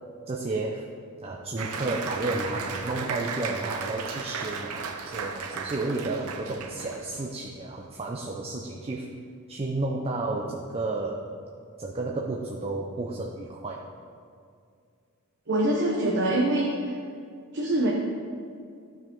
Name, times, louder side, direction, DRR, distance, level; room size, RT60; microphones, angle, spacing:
voice 1, 0.3-0.9 1.2-9.1 9.5-11.2 11.8-13.8, right 2 dB, 25° right, -1 dB, 0.5 m, -32 dB
Applause, 1.6-7.3, right 5 dB, 85° right, 0.7 m, -35 dB
voice 2, 15.5-16.9 17.5-17.9, right 1 dB, 55° right, -2 dB, 0.8 m, -24 dB
12.5 x 4.8 x 3.8 m, 2.2 s
head